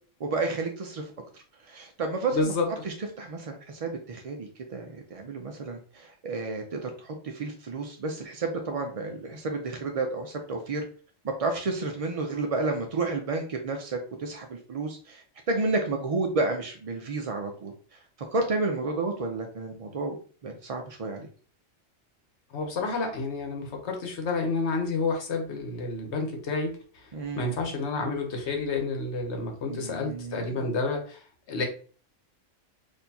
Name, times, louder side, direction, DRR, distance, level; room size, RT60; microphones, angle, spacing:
voice 1, 0.2-1.0 1.7-10.8 11.2-15.2 15.5-17.7 18.3-20.1 20.4-21.3 27.1-27.6 29.7-30.7, right 3 dB, 65° right, 3 dB, 0.3 m, -31 dB
voice 2, 2.3-2.7 22.5-26.7 27.4-31.2 31.5-31.6, left 3 dB, 65° left, 3 dB, 1.1 m, -29 dB
4.3 x 2.7 x 2.7 m, 0.42 s
omnidirectional pair, 1.3 m